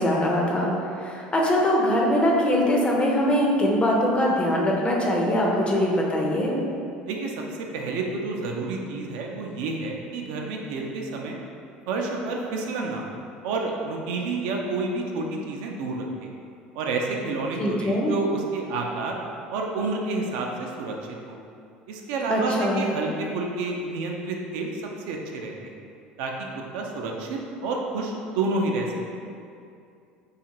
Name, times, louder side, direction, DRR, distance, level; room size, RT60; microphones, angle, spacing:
voice 1, 0.0-6.6 17.6-18.1 22.3-22.9, equal, 25° left, -2 dB, 0.5 m, -22 dB
voice 2, 7.1-11.4 11.9-13.2 13.4-16.3 16.8-19.2 19.5-20.9 21.3-21.4 21.9-25.5 26.2-26.5 26.7-28.9, right 3 dB, 70° right, 0 dB, 0.3 m, -29 dB
2.4 x 2.3 x 2.9 m, 2.5 s
hypercardioid pair, 75°, 5 cm